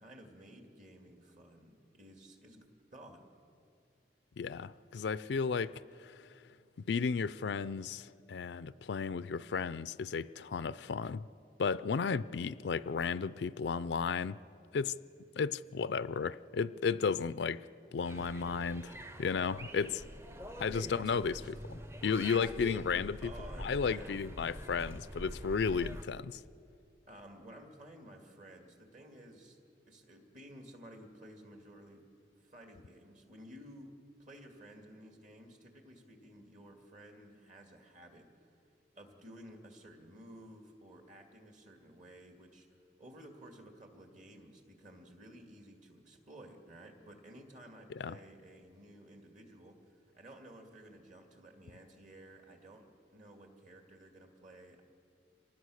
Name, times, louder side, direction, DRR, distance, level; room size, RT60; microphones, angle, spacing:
voice 1, 0.0-2.7 2.9-3.3 20.7-21.5 22.3-22.5 23.2-24.2 27.1-29.6 29.9-32.0 32.4-33.9 34.2-38.6 38.9-54.8, right 1 dB, 45° right, 3 dB, 2.3 m, -54 dB
voice 2, 4.4-6.3 6.9-11.3 11.6-14.4 14.7-14.9 15.3-17.7 17.9-20.0 20.6-21.3 22.0-23.3 23.6-26.4 48.0-48.2, left 5 dB, 70° left, 15 dB, 0.4 m, -34 dB
sound 1, 18.0-26.0, right 1 dB, 15° right, 0.7 m, -45 dB
26.5 x 19.5 x 6.4 m, 2.5 s
head